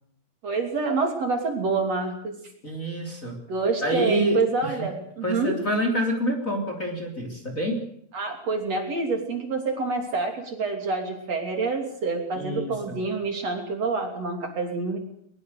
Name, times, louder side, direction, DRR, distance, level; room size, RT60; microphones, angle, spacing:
voice 1, 0.4-2.4 3.5-5.5 8.1-15.0, right 4 dB, 45° right, 3 dB, 4.0 m, -27 dB
voice 2, 2.6-3.4 3.8-4.8 5.2-7.8 12.3-13.0, equal, 20° left, 2 dB, 3.5 m, -27 dB
22.0 x 21.0 x 6.7 m, 0.69 s
omnidirectional pair, 4.2 m